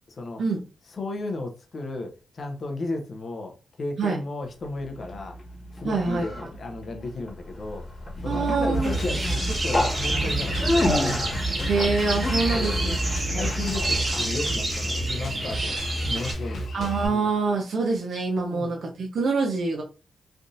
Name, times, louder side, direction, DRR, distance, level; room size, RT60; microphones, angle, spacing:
voice 1, 0.1-0.4 0.9-5.4 5.7-7.8 8.2-11.4 12.5-12.8 13.3-17.3 18.5-18.7, left 2 dB, 55° left, 0.8 m, -34 dB
Conversation, 4.6-14.1, left 1 dB, 35° left, 1.5 m, -29 dB
voice 2, 5.8-6.3 8.3-8.9 11.7-12.9 13.3-13.5 16.7-19.8, right 4 dB, 70° right, 0.7 m, -25 dB
Drum kit, 8.7-17.1, equal, 80° left, 1.0 m, -32 dB
sound 1, 8.8-16.3, right 2 dB, 35° right, 1.8 m, -30 dB
3.4 x 2.5 x 2.7 m
cardioid pair, 70°, 0 cm